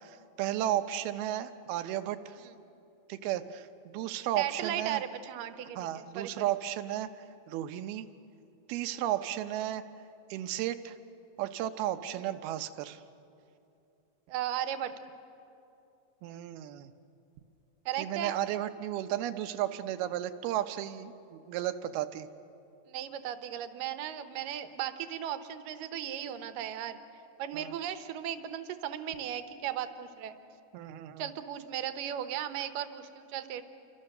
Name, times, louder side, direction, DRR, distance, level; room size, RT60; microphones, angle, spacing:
voice 1, 0.0-2.4 3.1-5.0 5.8-7.1 7.5-8.1 8.7-9.8 10.3-11.0 11.4-13.0 16.2-16.9 18.0-22.3 27.5-27.7 30.7-31.3, right 12 dB, 90° right, 11 dB, 2.8 m, -34 dB
voice 2, 4.4-6.4 12.1-12.2 14.3-14.9 17.9-18.3 22.9-27.0 27.4-30.3 31.2-33.6, right 10 dB, 70° right, 10 dB, 2.5 m, -36 dB
29.5 x 25.0 x 6.6 m, 2.7 s
omnidirectional pair, 4.3 m